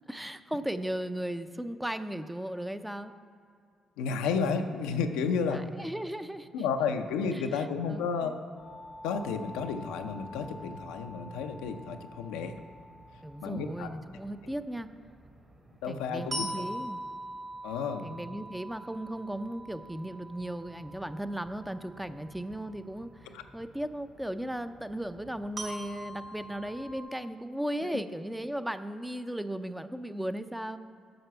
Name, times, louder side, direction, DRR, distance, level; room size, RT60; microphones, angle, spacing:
voice 1, 0.1-3.1 5.5-6.5 7.3-8.4 13.2-14.9 15.9-17.0 18.0-30.8, right 1 dB, 5° right, 10 dB, 0.5 m, -36 dB
voice 2, 4.0-5.6 6.5-8.3 9.0-12.5 13.4-13.9 15.8-16.5 17.6-18.1 23.3-23.4 27.8-27.9, left 5 dB, 85° left, 6 dB, 0.5 m, -32 dB
sound 1, 8.6-27.0, right 1 dB, 35° right, 1.6 m, -45 dB
7.8 x 5.8 x 6.8 m, 2.2 s
supercardioid pair, 55°, 0 cm